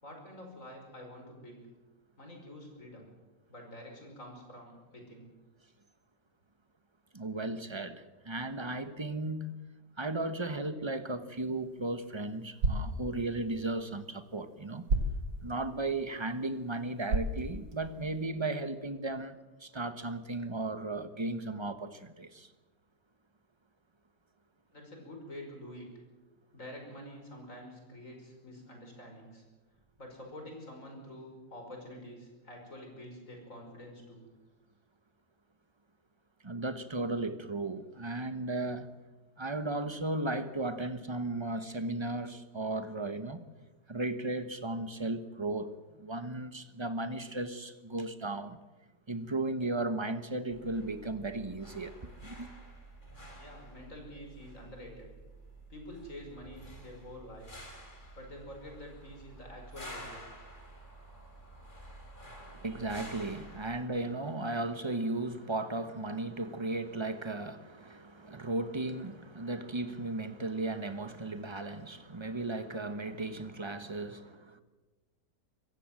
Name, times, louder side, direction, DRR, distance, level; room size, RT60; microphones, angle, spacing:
voice 1, 0.0-1.7 2.2-3.1 3.5-5.3 24.7-25.9 26.5-29.4 30.0-34.3 53.3-55.1 55.7-57.5 58.2-60.2, left 1 dB, 50° left, 2 dB, 5.8 m, -47 dB
voice 2, 7.1-9.6 10.0-14.9 15.4-22.5 36.4-38.9 39.4-43.4 43.9-48.6 49.1-52.0 52.2-52.5 62.5-74.6, right 2 dB, 20° right, 11 dB, 0.9 m, -35 dB
sound 1, 11.4-18.3, right 2 dB, 80° right, 2.7 m, -37 dB
sound 2, 50.5-63.8, right 1 dB, 30° left, 4.0 m, -50 dB
25.0 x 15.5 x 7.6 m, 1.2 s
omnidirectional pair, 1.8 m